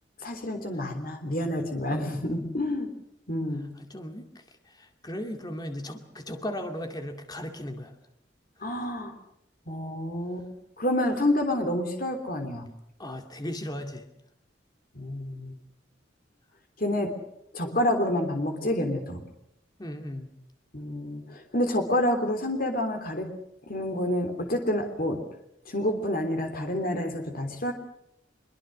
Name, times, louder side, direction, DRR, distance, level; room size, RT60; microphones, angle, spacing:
voice 1, 0.2-2.9 3.3-3.7 8.6-9.1 9.7-10.5 10.8-12.7 14.9-15.5 16.8-17.1 17.5-19.2 20.7-23.3 23.7-25.2 25.7-27.7, left 1 dB, 50° left, 5 dB, 3.3 m, -28 dB
voice 2, 1.9-2.2 3.8-4.3 4.7-7.9 13.0-14.0 19.8-20.3, left 1 dB, 20° left, 5 dB, 2.3 m, -36 dB
24.5 x 23.0 x 6.4 m, 0.79 s
head